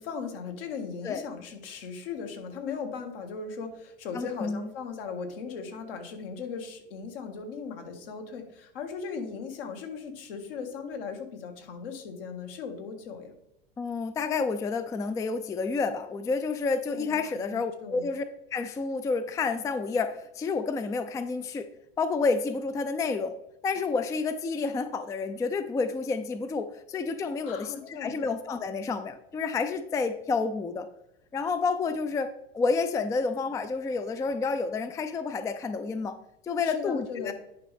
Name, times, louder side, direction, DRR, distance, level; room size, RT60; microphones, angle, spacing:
voice 1, 0.0-13.3 16.9-18.1 27.4-28.2 36.6-37.3, left 5 dB, 65° left, 5 dB, 1.9 m, -38 dB
voice 2, 4.1-4.7 13.8-18.2 18.5-21.7 22.0-23.4 23.6-30.9 31.3-36.2 36.4-37.3, left 4 dB, 10° left, 11 dB, 0.4 m, -29 dB
10.0 x 5.2 x 3.4 m, 0.85 s
hypercardioid pair, 100°, 30 cm